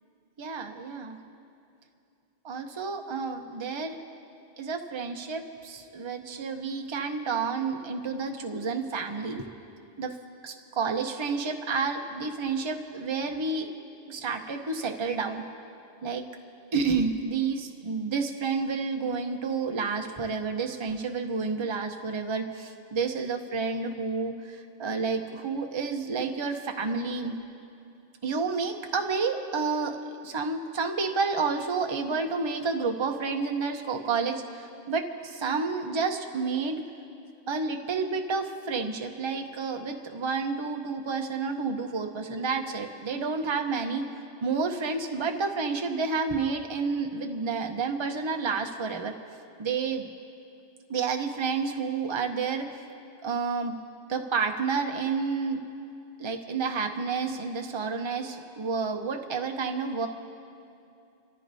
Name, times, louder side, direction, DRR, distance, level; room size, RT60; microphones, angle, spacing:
voice 1, 0.4-1.2 2.4-4.0 4.6-9.5 10.0-10.2 10.4-13.7 14.1-15.4 16.0-16.2 16.7-27.3 28.2-36.8 37.5-44.1 44.4-49.2 49.6-50.1 50.9-52.7 53.2-53.8 54.1-55.6 56.2-60.1, right 4 dB, 25° right, 4 dB, 0.8 m, -30 dB
28.5 x 14.0 x 2.7 m, 2.6 s
omnidirectional pair, 1.2 m